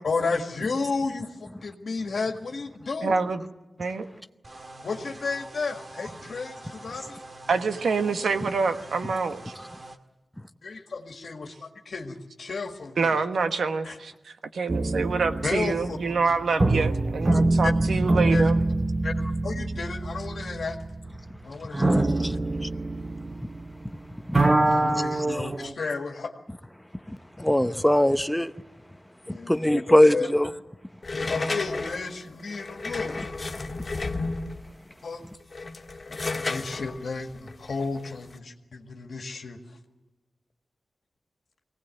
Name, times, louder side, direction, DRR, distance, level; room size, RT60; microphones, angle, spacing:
voice 1, 0.0-3.2 4.8-7.2 10.6-13.2 13.8-14.0 15.4-16.0 16.2-16.3 17.6-17.7 18.3-18.5 19.0-19.1 19.4-20.8 21.4-22.1 24.6-26.3 29.3-30.3 31.1-33.2 35.0-35.2 36.5-39.6, left 4 dB, 70° left, 1.8 m, -32 dB
voice 2, 3.0-3.4 3.8-4.1 7.5-9.6 13.0-18.6, right 4 dB, 85° right, 1.3 m, -26 dB
sound 1, 4.4-10.0, right 2 dB, 45° right, 1.8 m, -44 dB
sound 2, 14.7-23.9 24.2-25.7, right 2 dB, 30° right, 1.0 m, -25 dB
voice 3, 21.7-22.7 24.2-24.4 24.7-25.5 27.1-28.5 29.3-30.5, left 1 dB, 5° left, 0.8 m, -23 dB
sound 3, 31.0-34.7 35.4-38.4, left 3 dB, 45° left, 1.6 m, -32 dB
23.0 x 18.0 x 9.1 m
wide cardioid pair, 85°, 0 cm